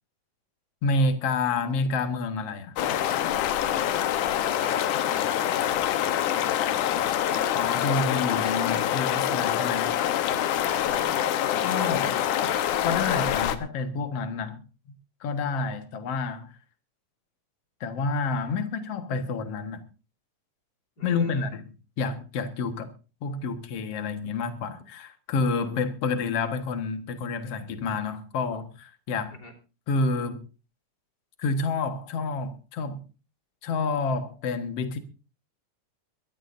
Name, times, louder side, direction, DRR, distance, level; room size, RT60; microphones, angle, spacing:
voice 1, 0.8-2.8 7.5-10.0 11.6-12.1 12.8-14.6 15.2-16.5 17.8-19.8 21.0-22.9 23.2-29.3 29.9-30.4 31.4-33.0 33.6-35.0, left 4 dB, 55° left, 2.3 m, -29 dB
sound 1, 2.8-13.6, left 11 dB, 75° left, 2.5 m, -25 dB
voice 2, 4.2-4.9 5.6-6.1 7.2-7.8 10.5-11.1 11.4-11.9 12.4-13.5 21.0-21.5 29.3-29.5, left 2 dB, 30° left, 3.7 m, -42 dB
23.5 x 14.0 x 2.6 m
omnidirectional pair, 3.6 m